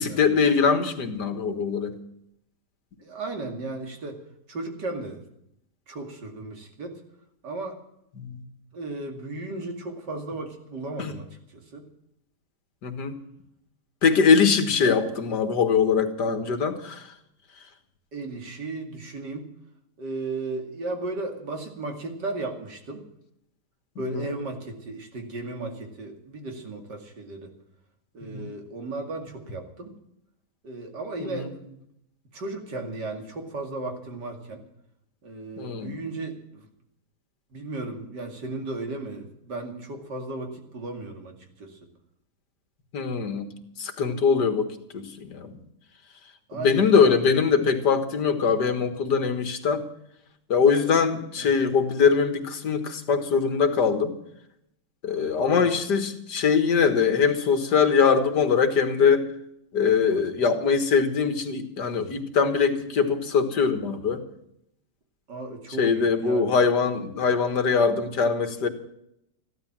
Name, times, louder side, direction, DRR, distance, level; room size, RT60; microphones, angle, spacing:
voice 1, 0.0-1.9 8.2-8.4 11.0-11.1 12.8-13.2 14.0-17.1 24.1-24.3 28.2-28.5 31.2-31.5 35.6-36.0 42.9-43.5 43.8-44.7 44.9-45.5 46.5-49.8 50.5-54.1 55.0-59.3 59.7-64.2 65.8-68.7, left 5 dB, 80° left, 8 dB, 2.2 m, -22 dB
voice 2, 3.0-4.2 4.5-5.2 5.9-7.0 7.4-7.8 8.7-11.4 11.7-11.9 14.8-15.4 18.1-19.5 20.0-23.0 24.0-27.5 28.1-29.9 30.6-31.8 32.3-34.6 35.2-36.7 37.5-41.8 46.5-47.3 51.4-51.6 55.4-55.7 65.3-66.5, right 2 dB, 85° right, 4 dB, 3.0 m, -35 dB
14.5 x 12.5 x 7.5 m, 0.77 s
omnidirectional pair, 1.8 m